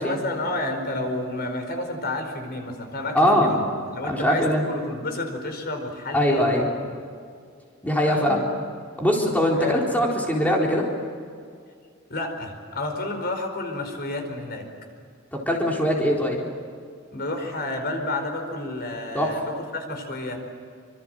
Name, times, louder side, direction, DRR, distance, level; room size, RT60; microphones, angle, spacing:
voice 1, 0.0-3.7 3.9-6.5 8.1-8.4 9.6-9.9 12.1-14.7 17.1-20.4, left 2 dB, 55° left, 5 dB, 4.6 m, -30 dB
voice 2, 3.1-3.5 4.0-4.6 6.1-6.7 7.8-8.4 9.0-10.9 15.3-16.4 19.1-19.3, equal, 10° left, -2 dB, 4.1 m, -21 dB
27.5 x 26.0 x 7.8 m, 2.2 s
head